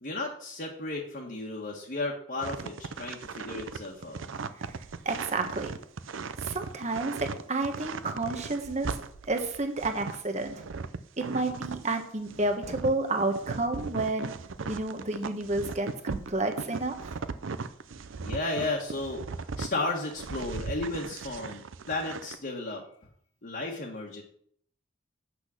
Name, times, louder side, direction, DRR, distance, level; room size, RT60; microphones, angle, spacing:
voice 1, 0.0-4.2 18.2-22.8 23.4-24.2, left 2 dB, 45° left, -1 dB, 1.4 m, -34 dB
sound 1, 2.4-11.9 12.3-19.7 20.1-22.4, right 4 dB, 75° right, 0.6 m, -38 dB
voice 2, 4.6-5.7 6.4-9.0 9.3-10.6 11.2-14.3 14.7-17.2, right 2 dB, 35° right, 5 dB, 1.2 m, -31 dB
8.3 x 6.2 x 6.3 m, 0.65 s
head